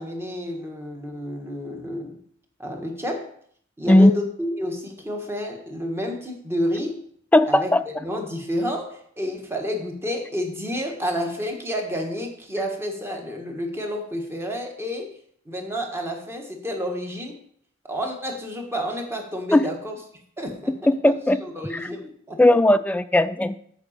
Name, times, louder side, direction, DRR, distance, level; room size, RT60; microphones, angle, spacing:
voice 1, 0.0-2.2 2.6-3.3 3.8-7.0 7.5-15.2 15.4-17.4 17.9-20.0 20.4-20.7 21.0-21.1 21.4-22.4, equal, 10° right, 2 dB, 1.4 m, -30 dB
voice 2, 7.3-7.8 19.5-19.7 21.0-21.4 21.7-21.9 22.4-23.6, left 1 dB, 5° left, 12 dB, 0.3 m, -17 dB
7.9 x 5.0 x 7.2 m, 0.64 s
head